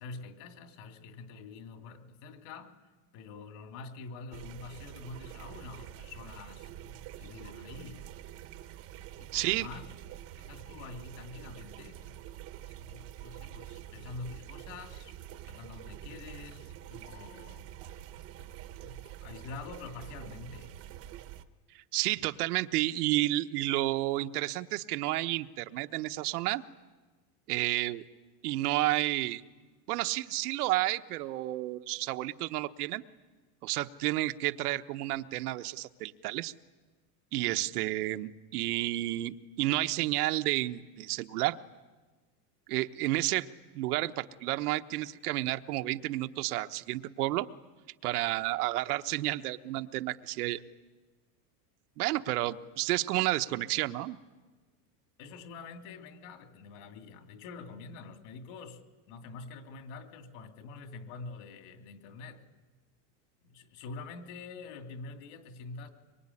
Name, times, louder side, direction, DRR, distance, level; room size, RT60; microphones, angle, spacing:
voice 1, 0.0-2.8 3.1-8.1 9.2-9.9 10.3-12.2 12.6-15.1 15.4-17.7 18.8-20.8 37.5-37.7 55.2-62.4 63.4-65.9, left 4 dB, 50° left, 5 dB, 3.0 m, -46 dB
sound 1, 4.3-21.4, right 12 dB, 30° right, 1.0 m, -46 dB
voice 2, 9.3-9.7 21.9-26.6 27.5-28.0 28.4-29.4 29.9-33.0 33.6-36.5 37.3-41.6 42.7-43.5 43.7-47.5 48.0-50.6 52.0-54.2, right 17 dB, 70° right, 8 dB, 1.1 m, -31 dB
24.5 x 24.5 x 9.9 m, 1.3 s
supercardioid pair, 175°, 47 cm